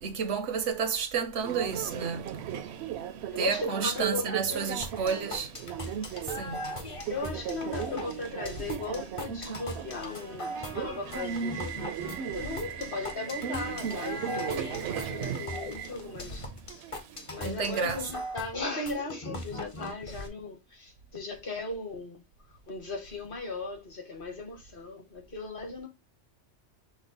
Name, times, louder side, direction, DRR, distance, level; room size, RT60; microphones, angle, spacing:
voice 1, 0.0-2.3 3.4-5.5 6.2-6.7 17.4-18.0, right 6 dB, 85° right, 1.1 m, -31 dB
Subway metro underground, 1.4-17.4, right 8 dB, 70° right, 0.8 m, -37 dB
voice 2, 3.3-4.8 7.1-16.5 17.3-22.2 22.7-25.9, left 3 dB, 50° left, 1.4 m, -37 dB
sound 1, 4.8-20.3, left 1 dB, 30° left, 0.7 m, -40 dB
6.0 x 2.1 x 3.8 m
omnidirectional pair, 1.2 m